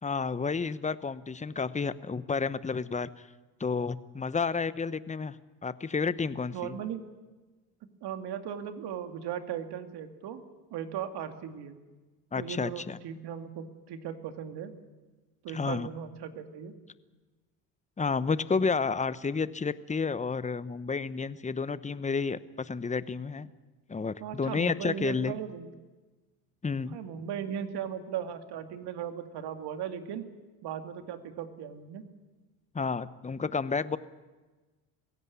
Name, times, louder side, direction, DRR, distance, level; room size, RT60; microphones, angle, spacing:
voice 1, 0.0-3.3 3.6-6.8 12.3-13.0 15.5-15.9 18.0-23.5 23.9-25.4 26.6-27.0 32.7-34.0, left 5 dB, 15° left, 16 dB, 1.0 m, -31 dB
voice 2, 6.5-7.0 8.0-10.4 10.7-11.8 12.4-14.7 15.4-16.7 24.2-25.7 26.9-30.2 30.6-32.0, right 9 dB, 60° right, 7 dB, 2.4 m, -37 dB
21.5 x 16.5 x 9.7 m, 1.3 s
hypercardioid pair, 65°, 45 cm